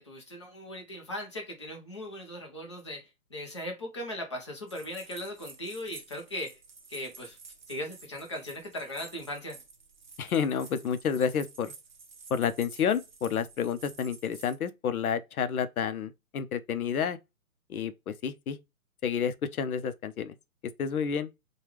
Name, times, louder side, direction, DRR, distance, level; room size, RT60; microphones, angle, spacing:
voice 1, 0.0-6.6 6.9-7.4 7.7-9.6, left 1 dB, 20° left, 0.5 m, -38 dB
sound 1, 4.7-14.6, right 4 dB, 35° right, 0.6 m, -51 dB
voice 2, 10.2-11.7 12.3-17.2 17.7-18.6 19.0-20.3 20.8-21.3, left 7 dB, 80° left, 0.6 m, -30 dB
3.3 x 2.3 x 3.0 m
hypercardioid pair, 165°, 43 cm